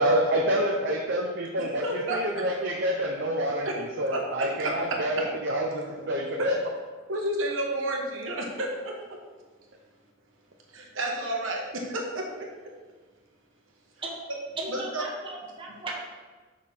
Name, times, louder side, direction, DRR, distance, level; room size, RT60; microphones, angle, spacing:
voice 1, 0.0-6.5, right 1 dB, 60° right, -1 dB, 0.7 m, -27 dB
voice 2, 1.8-2.4 3.6-3.7 4.1-4.7 6.4-6.5 7.1-8.9 10.7-12.5 14.7-15.0, right 1 dB, 75° right, 0 dB, 1.3 m, -30 dB
voice 3, 14.6-16.1, right 2 dB, 25° right, -2 dB, 1.2 m, -36 dB
5.7 x 4.8 x 5.7 m, 1.3 s
head